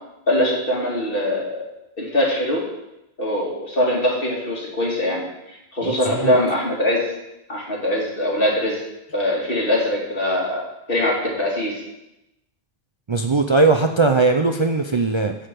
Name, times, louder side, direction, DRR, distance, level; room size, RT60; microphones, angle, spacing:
voice 1, 0.3-1.6 2.0-2.7 3.2-7.1 7.5-8.8 9.1-11.8, left 1 dB, 60° left, -3 dB, 2.8 m, -22 dB
voice 2, 5.8-6.4 13.1-15.4, right 3 dB, 35° right, 4 dB, 0.5 m, -19 dB
10.0 x 5.1 x 7.6 m, 0.90 s
omnidirectional pair, 1.0 m